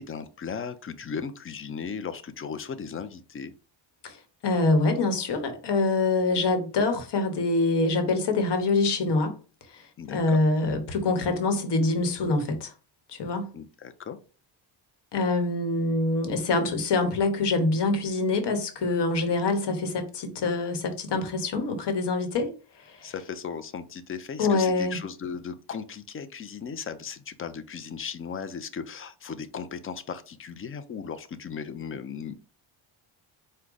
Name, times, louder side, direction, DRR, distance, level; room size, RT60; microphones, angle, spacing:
voice 1, 0.0-3.5 10.0-10.4 13.5-14.2 23.0-32.3, left 6 dB, 30° left, 0.4 m, -36 dB
voice 2, 4.4-9.3 9.7-12.7 13.1-13.5 15.1-22.5 22.9-23.1 24.4-25.0, left 3 dB, 60° left, 1.1 m, -25 dB
4.7 x 2.2 x 3.8 m
cardioid pair, 125°, 47 cm